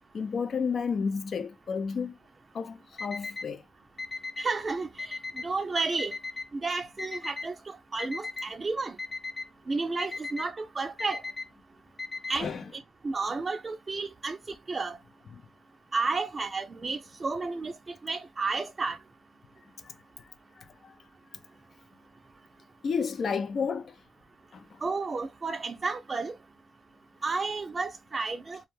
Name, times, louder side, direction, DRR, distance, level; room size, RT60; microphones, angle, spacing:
voice 1, 0.1-2.2 2.5-3.6 12.4-12.6 15.3-15.4 19.8-19.9 20.6-20.9 22.8-23.9 24.5-24.7, left 5 dB, 60° left, 0.4 m, -31 dB
Alarm, 3.0-3.5 4.0-4.5 5.0-5.5 6.0-6.5 7.0-7.5 8.0-8.5 9.0-9.5 10.0-10.5 11.0-11.5 12.0-12.5, left 3 dB, 30° left, 0.7 m, -36 dB
voice 2, 4.4-6.1 6.5-9.0 9.7-11.2 12.3-15.0 15.9-19.0 24.8-26.4 27.2-28.6, right 3 dB, 40° right, 0.4 m, -32 dB
2.4 x 2.1 x 3.0 m
supercardioid pair, 50°, 0 cm